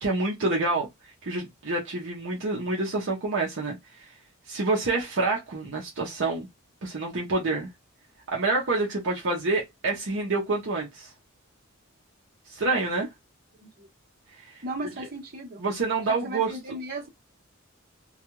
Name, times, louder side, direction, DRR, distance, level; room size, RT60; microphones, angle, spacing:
voice 1, 0.0-4.1 4.5-6.5 6.8-7.7 8.3-11.1 12.5-13.1 14.3-14.6 15.6-16.5, right 3 dB, 60° right, 0.8 m, -27 dB
voice 2, 14.6-15.6 16.1-17.1, right 1 dB, 45° right, 1.1 m, -36 dB
2.4 x 2.3 x 3.0 m
head